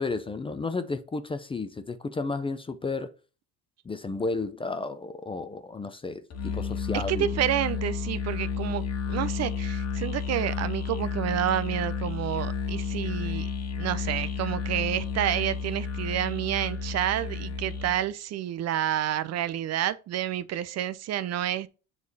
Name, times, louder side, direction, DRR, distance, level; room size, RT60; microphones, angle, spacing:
voice 1, 0.0-3.1 3.8-7.3, left 3 dB, 15° left, 0.5 m, -32 dB
Musical instrument, 6.3-18.0, left 5 dB, 45° left, 1.4 m, -32 dB
voice 2, 6.9-8.8 9.1-13.5 13.8-21.7, right 11 dB, 45° right, 0.5 m, -29 dB
7.3 x 3.3 x 3.9 m
cardioid pair, 115°, 36 cm